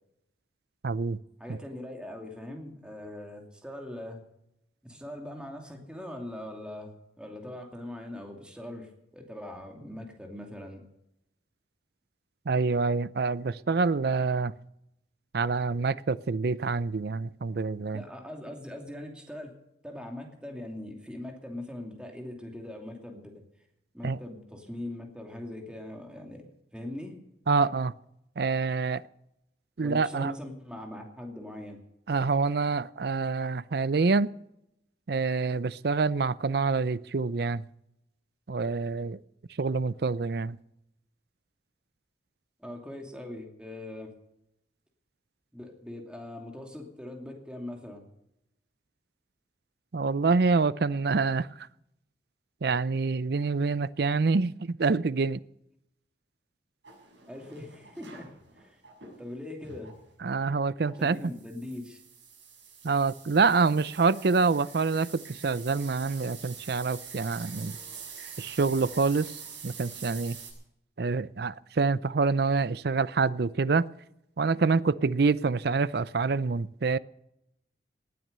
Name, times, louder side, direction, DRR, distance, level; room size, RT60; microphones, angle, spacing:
voice 1, 0.8-1.2 1.5-1.6 12.5-14.5 15.3-18.0 24.0-24.2 27.5-27.9 28.4-29.1 29.8-30.3 32.1-34.3 35.1-37.6 38.5-39.2 39.6-40.6 49.9-51.7 52.6-55.4 60.2-61.2 62.8-67.8 68.4-70.4 71.0-73.9 74.4-77.0, right 4 dB, 60° right, 0.5 m, -26 dB
voice 2, 1.4-4.2 4.8-10.8 17.9-19.5 19.8-23.3 23.9-26.4 26.7-27.2 29.8-31.8 42.6-44.1 45.5-48.0 57.3-58.3 58.6-58.8 59.2-59.9 61.0-62.0, left 1 dB, 5° right, 2.6 m, -41 dB
sound 1, 56.8-59.2 59.6-59.9 60.8-70.5, right 6 dB, 85° right, 6.8 m, -46 dB
18.5 x 9.4 x 6.7 m
head